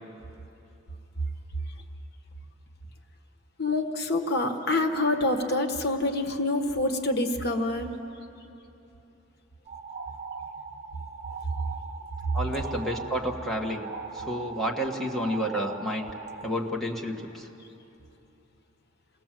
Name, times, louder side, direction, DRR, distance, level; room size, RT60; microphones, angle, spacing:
voice 1, 3.6-7.9, left 2 dB, 60° left, 5 dB, 1.4 m, -26 dB
sound 1, 9.7-16.5, right 5 dB, 35° right, 1.6 m, -40 dB
voice 2, 12.3-13.9 14.1-16.1 16.4-17.5, equal, ahead, -2 dB, 1.7 m, -30 dB
27.5 x 19.5 x 7.6 m, 2.9 s
head